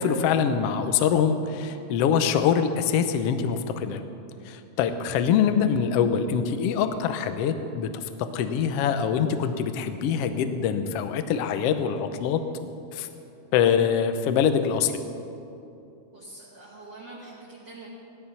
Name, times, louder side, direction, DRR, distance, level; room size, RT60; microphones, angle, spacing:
voice 1, 0.0-4.0 4.5-12.4 12.9-13.1 13.5-14.9, left 7 dB, 75° left, 9 dB, 1.4 m, -24 dB
voice 2, 16.1-17.9, right 2 dB, 40° right, -6 dB, 2.3 m, -44 dB
16.5 x 12.5 x 5.7 m, 2.7 s
omnidirectional pair, 3.7 m